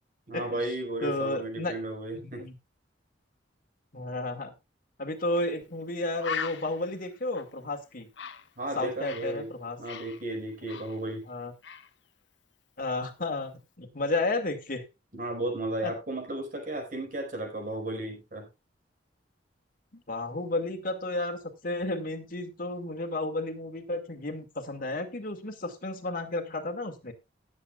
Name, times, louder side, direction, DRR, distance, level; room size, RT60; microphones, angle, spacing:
voice 1, 0.3-2.5 8.6-9.5 9.8-11.3 15.1-18.5, right 1 dB, 50° right, 2 dB, 5.0 m, -34 dB
voice 2, 1.0-1.7 2.2-2.5 3.9-4.5 5.0-8.1 8.8-9.8 11.3-11.5 12.8-14.8 15.8-15.9 19.9-27.1, left 2 dB, 50° left, 5 dB, 2.3 m, -32 dB
Bird, 5.3-5.5 5.8-5.9 6.2-9.4 9.6-11.3 11.6-11.9, left 7 dB, 75° left, 1.0 m, -39 dB
19.0 x 8.2 x 2.4 m, 0.25 s
head